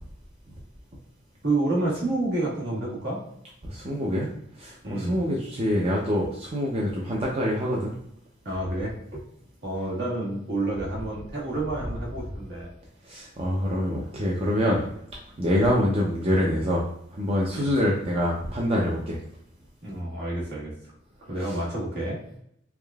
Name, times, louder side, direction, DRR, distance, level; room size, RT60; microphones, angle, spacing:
voice 1, 1.4-3.2 4.8-5.2 8.4-9.0 9.6-12.7 17.5-17.7 19.8-20.7 21.3-22.2, right 2 dB, 55° right, -4 dB, 1.3 m, -29 dB
voice 2, 3.6-4.3 4.5-7.9 13.0-14.9 15.4-19.2 21.4-21.6, equal, 30° right, -3 dB, 0.5 m, -25 dB
3.5 x 3.4 x 2.3 m, 0.74 s
head